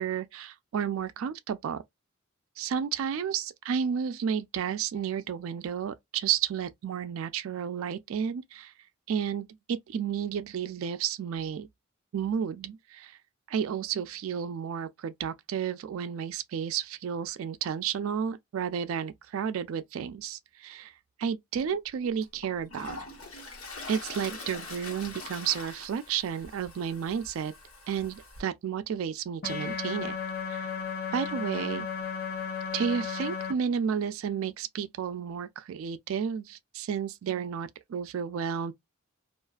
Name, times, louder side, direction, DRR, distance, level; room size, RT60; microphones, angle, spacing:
voice 1, 0.0-1.8 2.6-8.7 9.1-11.7 12.1-13.2 13.5-20.9 21.2-23.0 23.9-27.5 27.9-30.2 30.5-30.7 31.1-31.9 32.7-38.7, right 7 dB, 70° right, 0.3 m, -32 dB
Toilet flush, 21.6-21.7 22.2-28.4, left 3 dB, 80° left, 1.2 m, -43 dB
sound 1, 29.4-33.5, left 6 dB, 50° left, 0.8 m, -34 dB
2.4 x 2.3 x 2.3 m
head